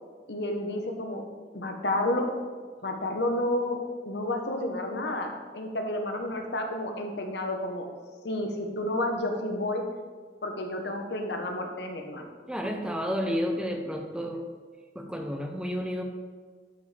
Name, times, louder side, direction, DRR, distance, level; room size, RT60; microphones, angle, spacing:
voice 1, 0.3-1.2 1.5-2.3 2.8-3.8 4.0-7.9 8.2-9.8 10.4-12.3, left 1 dB, 70° left, 3 dB, 1.0 m, -30 dB
voice 2, 12.5-14.5 14.9-16.0, equal, 5° right, 3 dB, 0.7 m, -31 dB
11.5 x 5.3 x 3.3 m, 1.5 s
head